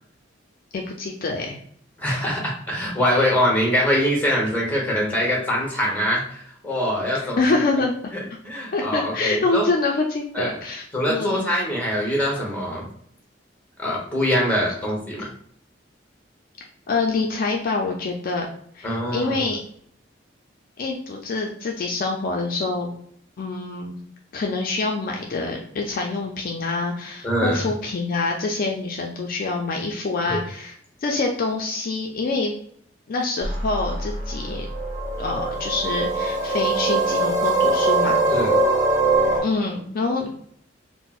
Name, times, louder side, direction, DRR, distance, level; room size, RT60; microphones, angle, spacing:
voice 1, 0.7-1.6 7.1-7.9 8.7-11.5 16.9-18.5 18.7-19.6 20.8-22.9 23.4-24.0 24.3-32.5 33.1-34.7 35.2-38.2 39.4-40.3, left 3 dB, 50° left, 1 dB, 0.4 m, -26 dB
voice 2, 2.0-7.4 8.1-9.7 10.3-10.5 10.9-12.8 13.8-15.3 18.8-19.5 27.2-27.6 30.3-30.4 38.3-38.5, equal, 10° left, -3 dB, 1.0 m, -23 dB
sound 1, 33.4-39.4, right 2 dB, 20° right, 1.4 m, -22 dB
4.2 x 2.0 x 2.3 m, 0.64 s
head